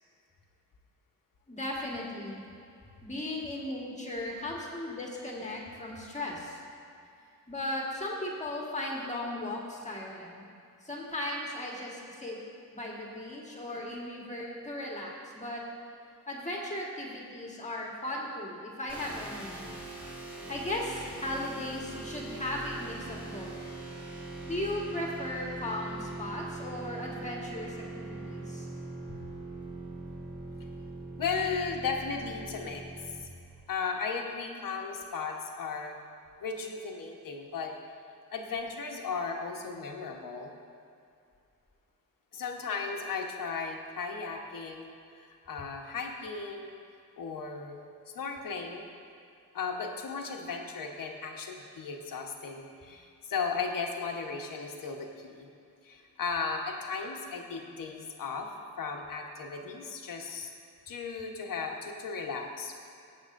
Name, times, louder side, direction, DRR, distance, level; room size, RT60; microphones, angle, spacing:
voice 1, 1.5-2.4 3.0-6.6 7.5-10.4 10.8-12.4 12.7-15.6 16.3-19.7 20.5-23.5 24.5-28.7, left 1 dB, 20° left, -2 dB, 1.5 m, -37 dB
sound 1, 18.9-33.2, right 2 dB, 5° right, 1.9 m, -42 dB
voice 2, 31.2-32.8 33.7-36.0 36.4-37.7 38.3-40.5 42.3-46.7 47.2-47.8 48.1-48.8 49.5-55.5 55.8-58.5 58.8-60.5 60.9-62.7, left 5 dB, 65° left, 2 dB, 1.2 m, -36 dB
18.0 x 8.0 x 2.6 m, 2.5 s
wide cardioid pair, 130°, 35 cm